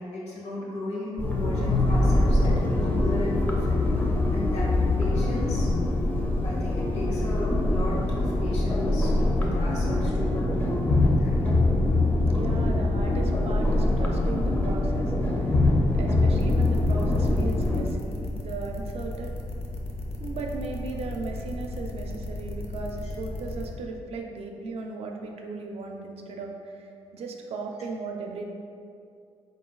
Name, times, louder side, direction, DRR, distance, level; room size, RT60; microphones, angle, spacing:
voice 1, 0.0-4.7 5.0-5.7 6.4-11.4, left 1 dB, 75° left, -4 dB, 1.0 m, -35 dB
sound 1, 1.2-17.8, left 2 dB, 15° left, 0.5 m, -23 dB
voice 2, 12.2-15.6 15.9-19.3 20.2-28.5, right 3 dB, 65° right, 2 dB, 0.5 m, -37 dB
sound 2, 16.4-23.7, left 2 dB, 60° left, 0.6 m, -35 dB
3.8 x 2.6 x 3.9 m, 2.4 s
cardioid pair, 85°, 11 cm